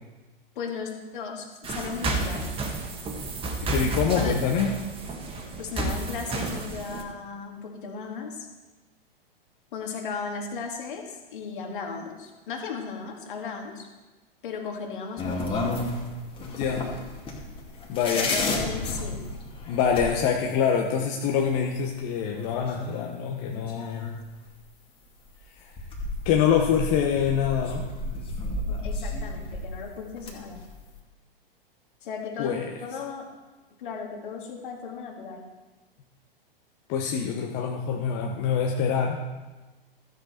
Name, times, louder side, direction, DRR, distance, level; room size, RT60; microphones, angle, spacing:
voice 1, 0.6-2.5 4.1-4.4 5.6-8.5 9.7-13.9 14.4-15.7 18.1-19.3 28.7-30.6 32.0-33.3 33.8-35.5, left 5 dB, 60° left, 2 dB, 2.3 m, -36 dB
Boxing gym workout training body bags, 1.6-7.0, right 2 dB, 20° right, 1.6 m, -31 dB
voice 2, 3.6-4.7 16.4-16.9 17.9-18.3 19.7-24.1 25.6-25.7 26.2-27.9 32.4-32.6 36.9-39.2, left 7 dB, 40° left, 0 dB, 1.2 m, -25 dB
sound 1, 15.2-20.1 21.5-21.6 21.9-22.0 22.3-23.2 23.5-24.2 25.2-25.3 25.8-29.8 30.2-30.8, left 2 dB, 20° left, 2.3 m, -32 dB
13.5 x 7.8 x 4.4 m, 1.2 s
figure-of-eight pair, 105°, 29 cm